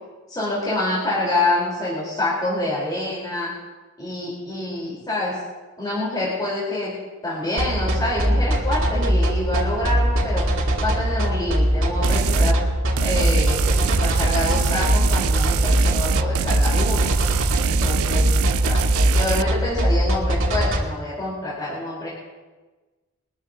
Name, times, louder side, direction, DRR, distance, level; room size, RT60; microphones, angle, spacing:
voice 1, 0.3-3.5 4.0-5.4 5.8-7.0 7.2-10.4 10.8-12.6 13.0-17.2 17.6-18.3 18.7-18.8 19.1-22.1, left 1 dB, 20° left, -7 dB, 3.9 m, -26 dB
sound 1, 7.6-20.8, equal, 65° right, 2.7 m, -21 dB
sound 2, 12.0-12.6 13.0-19.4, right 6 dB, 80° right, 0.4 m, -24 dB
23.5 x 13.5 x 2.8 m, 1.2 s
head